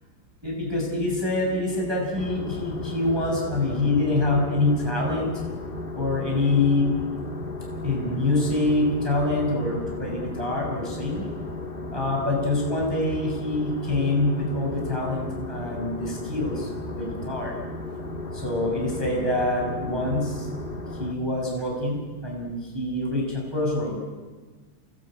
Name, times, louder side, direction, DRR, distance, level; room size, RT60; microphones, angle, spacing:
voice 1, 0.4-5.4 5.9-6.9 7.8-11.3 11.9-17.6 18.3-20.5 21.0-24.0, left 2 dB, 5° right, -1 dB, 6.1 m, -25 dB
sound 1, 2.1-21.1, left 2 dB, 30° left, 0.9 m, -35 dB
28.5 x 21.0 x 9.0 m, 1.4 s
omnidirectional pair, 4.1 m